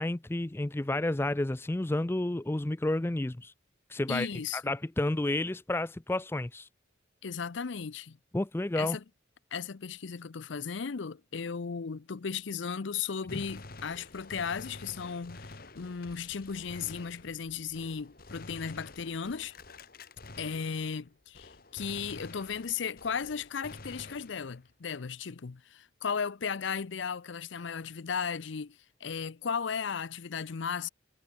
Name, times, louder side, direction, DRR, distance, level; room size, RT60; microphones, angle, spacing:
voice 1, 0.0-3.5 3.9-4.3 4.5-6.7 8.3-9.0 13.3-13.4, left 1 dB, 10° left, 0.4 m, -31 dB
voice 2, 4.1-4.7 7.2-8.2 8.8-9.0 9.5-19.6 20.4-30.9, left 6 dB, 70° left, 0.6 m, -36 dB
Gunshot gunfire, 13.3-21.1 21.3-24.7, left 2 dB, 50° left, 2.0 m, -49 dB
head